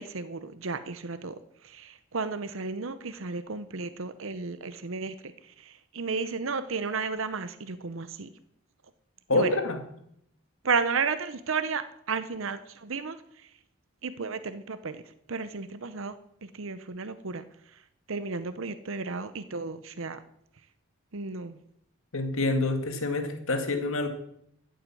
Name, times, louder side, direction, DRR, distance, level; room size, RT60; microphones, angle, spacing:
voice 1, 0.0-8.3 9.3-9.5 10.6-13.5 14.0-15.0 15.3-16.1 16.4-17.8 18.1-20.2 21.1-21.6, right 4 dB, 70° right, 12 dB, 0.8 m, -33 dB
voice 2, 9.3-9.8 22.1-24.1, left 2 dB, 75° left, 6 dB, 2.1 m, -27 dB
14.0 x 7.8 x 7.8 m, 0.72 s
head